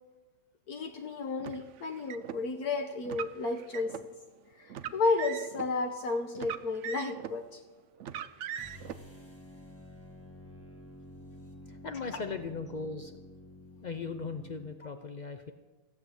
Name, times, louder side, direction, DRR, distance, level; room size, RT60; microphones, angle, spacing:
voice 1, 0.7-4.1 4.6-7.6, left 3 dB, 65° left, 4 dB, 1.4 m, -32 dB
Car, 1.4-2.4 3.0-4.1 4.7-5.7 6.3-7.4 8.0-8.9, right 9 dB, 65° right, 0.7 m, -40 dB
sound 1, 8.5-14.8, left 1 dB, 10° left, 1.4 m, -50 dB
voice 2, 11.7-13.2 13.8-15.5, left 4 dB, 85° left, 7 dB, 0.4 m, -38 dB
15.0 x 7.6 x 8.1 m, 1.3 s
omnidirectional pair, 1.8 m